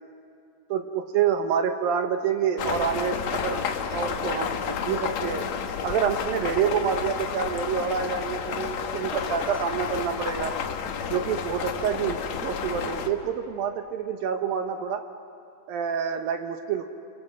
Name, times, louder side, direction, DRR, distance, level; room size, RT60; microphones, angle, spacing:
voice 1, 0.7-3.6 3.9-5.5 5.8-10.6 11.1-15.0 15.7-16.8, right 7 dB, 70° right, 6 dB, 2.4 m, -27 dB
sound 1, 2.6-13.1, left 7 dB, 70° left, 1.7 m, -31 dB
29.5 x 26.5 x 7.6 m, 2.5 s
omnidirectional pair, 4.9 m